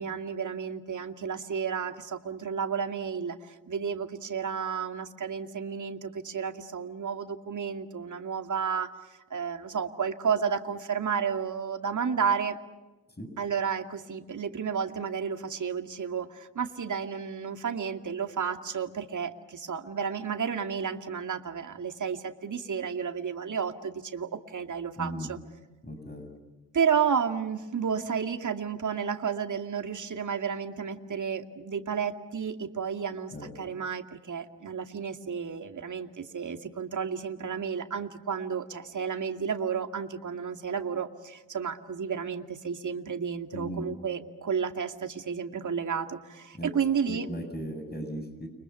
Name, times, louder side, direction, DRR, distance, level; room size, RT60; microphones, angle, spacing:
voice 1, 0.0-8.9 9.3-12.6 13.4-25.4 26.7-47.3, right 6 dB, 45° right, 7 dB, 2.5 m, -32 dB
voice 2, 25.0-25.3 25.8-26.3 33.3-33.5 43.5-43.9 46.5-46.7 47.0-48.5, equal, 25° left, 7 dB, 7.3 m, -37 dB
30.0 x 24.5 x 7.1 m, 1.1 s
hypercardioid pair, 45°, 41 cm